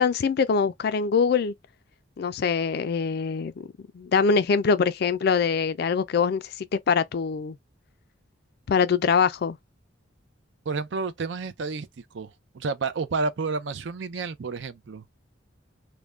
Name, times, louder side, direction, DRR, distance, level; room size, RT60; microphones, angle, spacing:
voice 1, 0.0-1.5 2.2-3.5 3.9-7.6 8.7-9.6, left 5 dB, 55° left, 0.3 m, -23 dB
voice 2, 10.7-11.9 12.1-15.0, right 4 dB, 65° right, 0.4 m, -30 dB
2.4 x 2.1 x 3.1 m
head